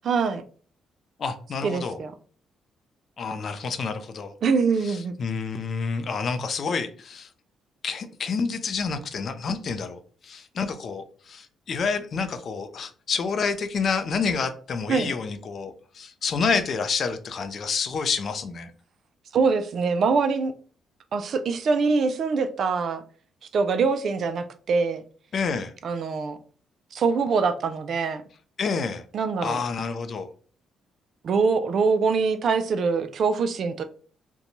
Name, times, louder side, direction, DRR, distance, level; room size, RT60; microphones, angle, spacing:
voice 1, 0.0-0.4 1.6-2.1 4.4-5.1 14.9-15.1 19.3-20.5 21.1-23.0 23.5-25.0 25.8-26.4 26.9-28.2 29.1-29.6 31.2-33.8, right 4 dB, 60° right, 0.3 m, -24 dB
voice 2, 1.2-2.0 3.2-4.3 4.8-7.3 7.8-18.7 25.3-25.7 28.6-29.0 29.4-30.3, left 5 dB, 50° left, 0.4 m, -28 dB
2.6 x 2.2 x 2.9 m
cardioid pair, 90°, 0 cm